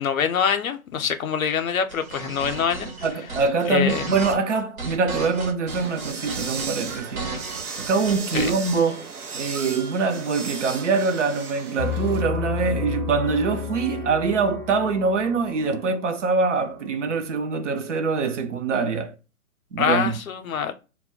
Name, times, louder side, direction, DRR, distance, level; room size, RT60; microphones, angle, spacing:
voice 1, 0.0-2.9 3.7-4.0 8.3-8.5 19.8-20.7, left 7 dB, 70° left, 0.6 m, -24 dB
sound 1, 1.9-8.8, right 4 dB, 75° right, 1.0 m, -34 dB
voice 2, 3.0-7.3 7.8-9.1 9.3-19.1 19.7-20.2, right 4 dB, 55° right, 0.7 m, -24 dB
sound 2, 5.7-12.2, right 5 dB, 90° right, 0.7 m, -35 dB
Piano, 11.8-17.3, left 8 dB, 5° right, 0.6 m, -32 dB
2.2 x 2.1 x 3.5 m
figure-of-eight pair, 135°, 43 cm